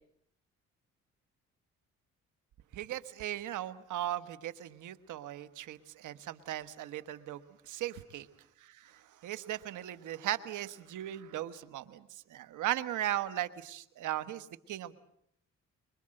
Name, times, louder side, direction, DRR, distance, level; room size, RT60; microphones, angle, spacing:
voice 1, 2.7-7.4 7.7-8.3 8.6-14.9, right 13 dB, 80° right, 12 dB, 1.4 m, -38 dB
25.0 x 23.0 x 7.8 m, 0.72 s
cardioid pair, 90°, 30 cm